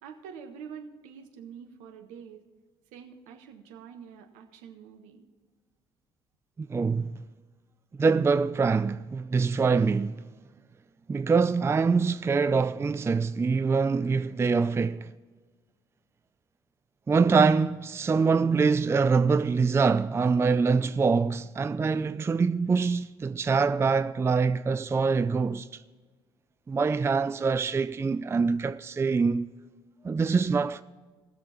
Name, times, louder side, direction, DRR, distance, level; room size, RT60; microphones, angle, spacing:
voice 1, 0.0-2.4 2.9-5.3, right 7 dB, 70° right, 1.3 m, -46 dB
voice 2, 6.6-7.1 8.0-10.3 11.1-15.1 17.1-25.8 26.7-29.5 30.0-30.8, right 4 dB, 20° right, 0.4 m, -24 dB
18.5 x 6.9 x 4.4 m
hypercardioid pair, 50°, 14 cm